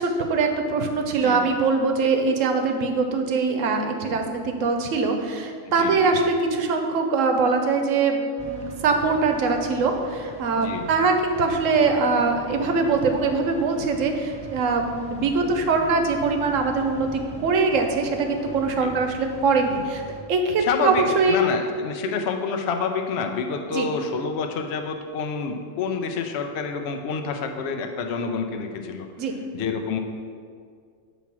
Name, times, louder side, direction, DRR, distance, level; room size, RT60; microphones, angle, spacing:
voice 1, 0.0-20.0 20.3-21.5 22.0-22.1 23.7-23.9 29.2-29.3, right 4 dB, 85° right, 4 dB, 1.0 m, -22 dB
voice 2, 1.2-1.5 5.7-6.1 10.5-10.9 18.8-18.9 20.6-29.1 29.5-30.0, left 5 dB, 65° left, 4 dB, 0.8 m, -28 dB
sound 1, 8.4-20.2, left 2 dB, 10° left, 0.4 m, -42 dB
6.9 x 3.1 x 5.9 m, 2.2 s
omnidirectional pair, 1.3 m